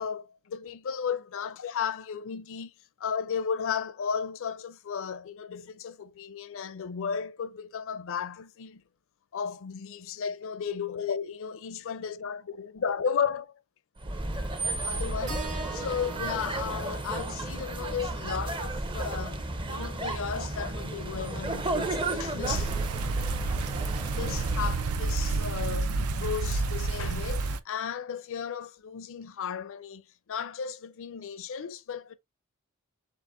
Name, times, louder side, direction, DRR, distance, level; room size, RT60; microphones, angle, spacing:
voice 1, 0.0-2.7 3.0-8.8 9.3-13.5 14.3-14.5 14.8-22.7 24.2-30.0 30.3-32.1, left 7 dB, 65° left, 0.5 m, -34 dB
sound 1, 14.0-25.1, right 2 dB, 25° right, 0.6 m, -33 dB
Keyboard (musical), 15.3-19.5, right 5 dB, 55° right, 2.7 m, -45 dB
sound 2, 22.4-27.6, right 3 dB, 85° right, 0.5 m, -30 dB
7.4 x 2.5 x 2.5 m
head